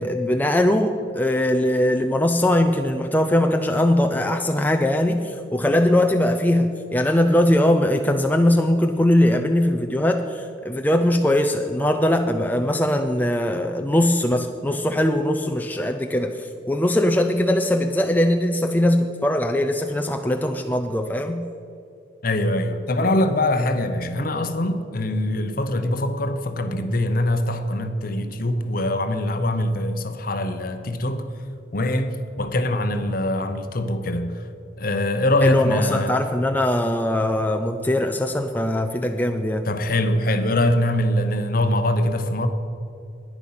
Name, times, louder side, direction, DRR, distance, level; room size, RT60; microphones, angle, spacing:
voice 1, 0.0-21.4 35.4-39.7, left 1 dB, 10° left, 0.4 m, -21 dB
voice 2, 22.2-31.3 31.7-34.5 34.8-36.2 39.6-42.5, left 1 dB, 50° left, 0.8 m, -23 dB
10.5 x 10.0 x 5.7 m
head